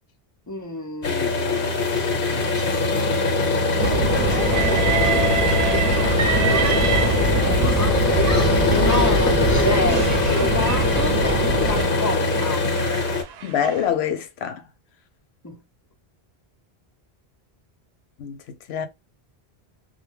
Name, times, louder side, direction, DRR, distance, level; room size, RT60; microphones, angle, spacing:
voice 1, 0.5-1.9 2.3-4.2 4.4-4.8 5.1-5.3 5.6-12.7 15.4-15.6, left 2 dB, 25° left, 0.5 m, -31 dB
sound 1, 1.0-13.2, left 2 dB, 60° left, 0.9 m, -22 dB
sound 2, 3.8-11.8, right 2 dB, 45° right, 0.8 m, -24 dB
Train, 4.4-7.8 8.6-13.9, right 7 dB, 75° right, 0.8 m, -29 dB
voice 2, 13.4-14.6 18.2-18.4 18.7-18.9, left 8 dB, 85° left, 0.8 m, -25 dB
2.2 x 2.2 x 3.2 m
omnidirectional pair, 1.1 m